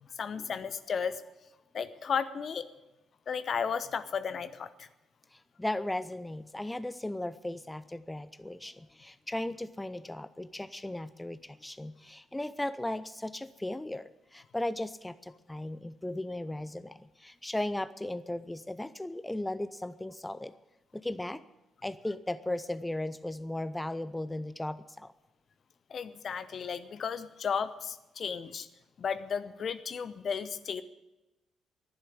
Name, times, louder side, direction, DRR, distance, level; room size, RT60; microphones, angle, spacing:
voice 1, 0.0-1.2 1.7-2.6 3.3-4.9 25.9-28.7 29.0-30.8, left 6 dB, 50° left, 13 dB, 0.9 m, -34 dB
voice 2, 5.3-20.5 20.9-21.4 21.8-25.1, left 1 dB, 10° left, 14 dB, 0.6 m, -36 dB
11.5 x 10.5 x 9.4 m, 1.0 s
figure-of-eight pair, 40°, 0 cm